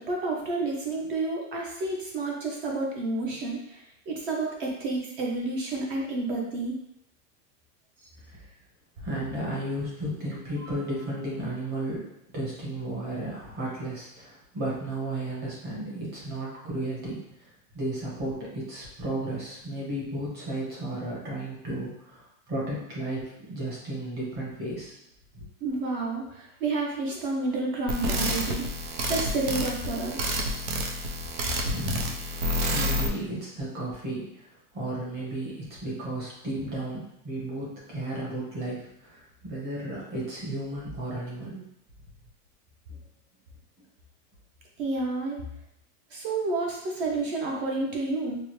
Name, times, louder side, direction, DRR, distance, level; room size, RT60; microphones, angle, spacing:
voice 1, 0.0-6.8 25.6-28.6 29.1-30.4 44.8-45.4 46.1-48.4, right 2 dB, 40° right, -1 dB, 0.5 m, -30 dB
voice 2, 9.0-25.0 25.3-25.5 31.6-32.4 32.7-34.5 34.7-41.6, right 1 dB, 20° right, -6 dB, 1.0 m, -34 dB
sound 1, 27.9-33.1, equal, 75° right, 0.8 m, -29 dB
4.7 x 2.0 x 3.0 m, 0.79 s
supercardioid pair, 175°, 45 cm